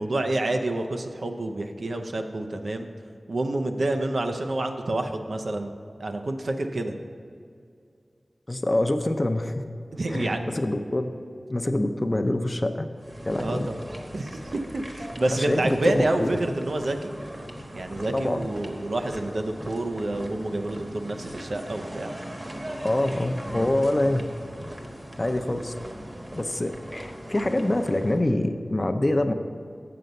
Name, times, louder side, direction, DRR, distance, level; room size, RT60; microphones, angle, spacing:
voice 1, 0.0-2.9 3.3-6.9 9.9-10.5 13.4-13.8 14.1-14.4 14.7-17.1 17.7-22.1, right 2 dB, 80° right, 5 dB, 0.6 m, -28 dB
voice 2, 8.5-9.6 10.1-11.1 11.5-12.9 13.3-13.7 15.3-16.3 18.1-18.5 22.8-24.3 25.2-25.7 26.3-29.3, left 1 dB, 35° left, 7 dB, 0.6 m, -25 dB
sound 1, 13.0-28.2, equal, 35° right, 1.1 m, -39 dB
7.7 x 6.8 x 5.2 m, 2.3 s
wide cardioid pair, 60°, 0 cm